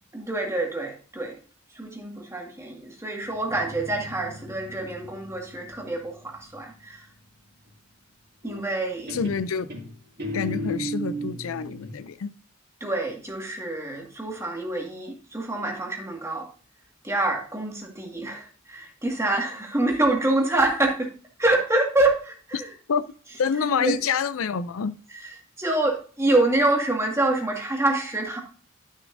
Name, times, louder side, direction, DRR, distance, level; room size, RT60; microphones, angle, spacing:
voice 1, 0.1-1.4 1.7-7.1 8.4-9.3 12.8-16.5 17.0-21.1 21.4-22.7 23.8-24.0 25.2-28.4, right 2 dB, 15° right, 1.9 m, -26 dB
Guitar, 3.3-6.9 8.4-8.8 9.1-12.0, right 1 dB, 50° right, 2.6 m, -36 dB
voice 2, 9.1-9.7 10.3-12.3 22.5-22.6 22.9-23.0 23.4-24.9, left 6 dB, 80° left, 0.5 m, -27 dB
11.5 x 6.6 x 2.6 m
head